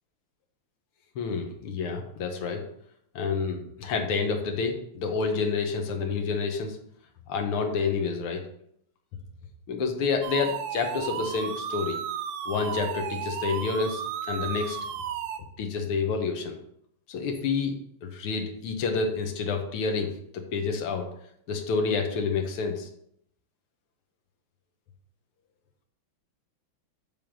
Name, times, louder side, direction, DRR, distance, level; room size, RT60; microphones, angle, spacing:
voice 1, 1.2-2.6 3.2-6.8 7.3-8.4 9.7-12.0 12.5-14.8 15.6-16.6 17.1-21.1 21.5-22.9, left 5 dB, 85° left, 4 dB, 2.0 m, -29 dB
sound 1, 10.2-15.4, right 9 dB, 90° right, 1.6 m, -34 dB
7.5 x 3.5 x 6.2 m, 0.70 s
omnidirectional pair, 2.4 m